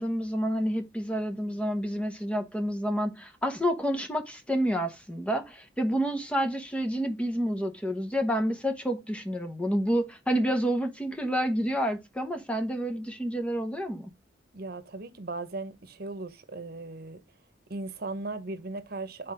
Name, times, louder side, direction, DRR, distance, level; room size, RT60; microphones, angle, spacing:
voice 1, 0.0-14.1, equal, 5° left, 0.9 m, -29 dB
voice 2, 14.5-17.2 17.7-19.3, right 2 dB, 60° right, 1.0 m, -37 dB
7.4 x 4.2 x 5.0 m
head